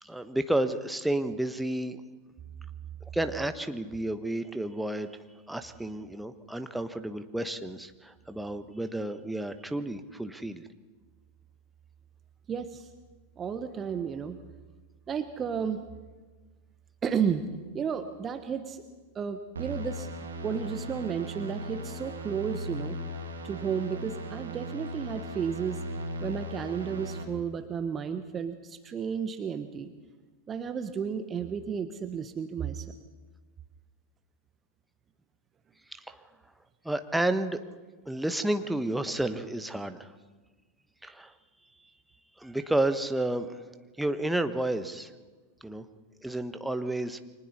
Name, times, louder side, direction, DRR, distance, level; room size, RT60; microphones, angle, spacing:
voice 1, 0.0-2.0 3.1-10.7 35.9-36.2 36.8-37.6 38.1-40.1 41.0-41.3 42.4-43.6 44.0-45.1 45.6-45.9 46.2-47.2, right 1 dB, 5° right, 9 dB, 1.2 m, -31 dB
voice 2, 12.5-12.9 13.4-14.4 15.1-15.8 17.0-17.4 17.7-18.8 19.1-23.0 23.4-25.8 26.2-29.9 30.5-32.9, right 7 dB, 25° right, 9 dB, 1.2 m, -32 dB
sound 1, 19.6-27.2, right 1 dB, 70° right, 2.6 m, -38 dB
29.5 x 24.5 x 4.3 m, 1.3 s
figure-of-eight pair, 90°, 0 cm